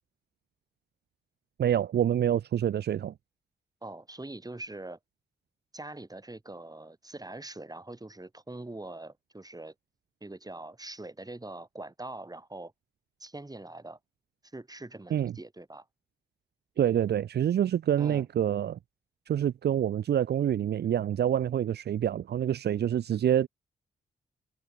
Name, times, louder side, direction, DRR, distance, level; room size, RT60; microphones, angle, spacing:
voice 1, 1.6-3.1 15.1-15.3 16.8-18.8 19.3-23.5, right 10 dB, 65° right, 0.8 m, -27 dB
voice 2, 3.8-5.0 5.7-9.7 10.2-12.7 13.2-14.0 14.5-15.9 18.0-18.3, right 2 dB, 20° right, 5.1 m, -43 dB
supercardioid pair, 45°, 18 cm